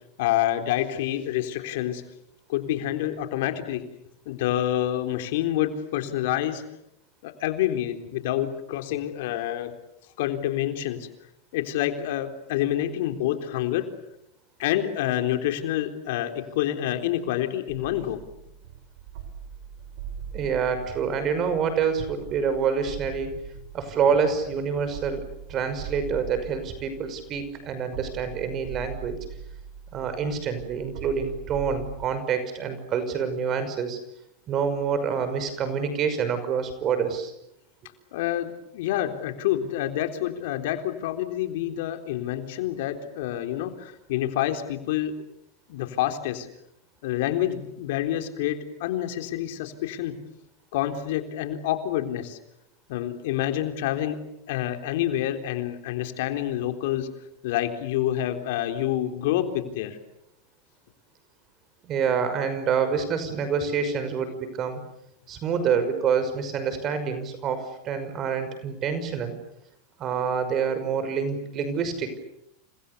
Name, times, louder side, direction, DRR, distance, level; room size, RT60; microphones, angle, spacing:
voice 1, 0.2-2.0 2.5-3.8 4.3-6.6 7.2-9.7 10.2-11.1 11.5-13.8 14.6-18.2 38.1-45.1 45.7-46.5 47.0-50.1 50.7-52.4 52.9-54.2 54.5-57.1 57.4-60.0, left 12 dB, 70° left, 6 dB, 3.8 m, -27 dB
sound 1, 17.7-32.1, right 7 dB, 65° right, 6.8 m, -41 dB
voice 2, 20.3-23.3 23.7-29.2 29.9-34.0 34.5-37.3 61.8-64.8 65.3-69.4 70.0-72.2, right 6 dB, 35° right, 10 dB, 5.8 m, -27 dB
29.5 x 27.0 x 7.0 m, 0.77 s
supercardioid pair, 125°, 0 cm